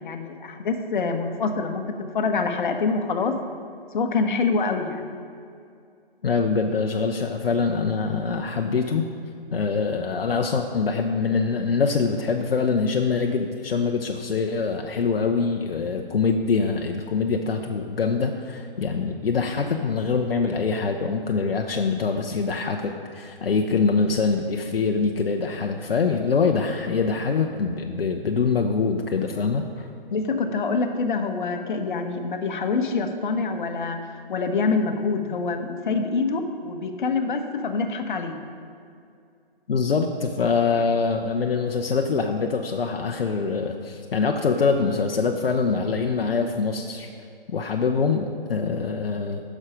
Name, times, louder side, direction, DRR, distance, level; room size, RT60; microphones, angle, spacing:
voice 1, 0.0-1.8 2.1-3.4 3.9-5.1 30.1-34.0 34.3-38.3, left 4 dB, 55° left, 6 dB, 1.1 m, -25 dB
voice 2, 6.2-9.0 9.5-29.9 39.7-47.1 47.5-49.4, left 5 dB, 75° left, 3 dB, 0.8 m, -24 dB
9.7 x 6.4 x 5.1 m, 2.4 s
figure-of-eight pair, 140°, 29 cm